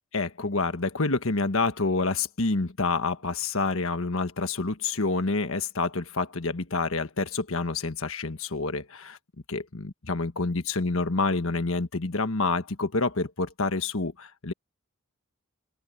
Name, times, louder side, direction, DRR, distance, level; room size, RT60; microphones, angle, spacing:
voice 1, 0.1-9.2 9.5-14.5, left 3 dB, 65° left, 1.4 m, -28 dB
open air
head